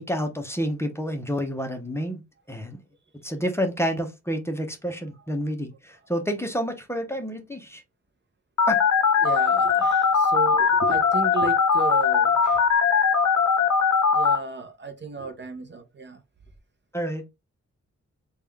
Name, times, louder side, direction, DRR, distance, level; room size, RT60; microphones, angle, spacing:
voice 1, 0.0-2.2 2.5-2.8 3.2-7.8 8.7-8.8 16.9-17.2, equal, 10° left, 0.6 m, -29 dB
Telephone, 8.6-14.4, left 6 dB, 70° left, 0.6 m, -20 dB
voice 2, 9.2-12.7 14.1-16.2, right 5 dB, 40° right, 0.5 m, -34 dB
3.5 x 2.3 x 3.2 m
wide cardioid pair, 150°, 29 cm